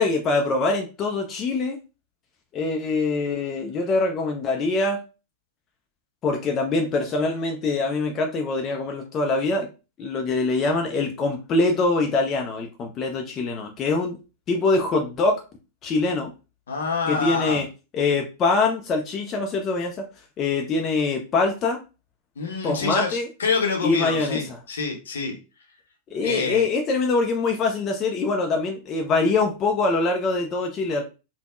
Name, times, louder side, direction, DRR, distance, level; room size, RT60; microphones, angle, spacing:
voice 1, 0.0-1.8 2.5-5.0 6.2-9.7 10.0-14.2 14.5-15.4 15.8-16.3 17.1-17.7 17.9-20.1 20.4-21.8 22.6-23.3 23.8-24.6 26.1-31.0, left 3 dB, 30° left, 0.4 m, -24 dB
voice 2, 16.7-17.6 22.4-25.4 26.2-26.7, left 4 dB, 65° left, 0.7 m, -27 dB
3.4 x 2.1 x 2.3 m
figure-of-eight pair, 90°, 0 cm